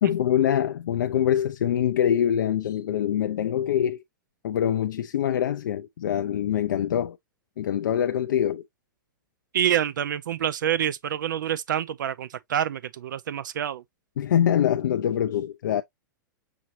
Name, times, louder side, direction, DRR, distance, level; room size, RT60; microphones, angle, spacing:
voice 1, 0.0-4.0 4.4-7.2 7.6-8.6 14.2-15.8, left 10 dB, 70° left, 0.5 m, -24 dB
voice 2, 9.5-13.8, right 10 dB, 70° right, 0.4 m, -27 dB
6.1 x 2.7 x 3.0 m
hypercardioid pair, 110°, 11 cm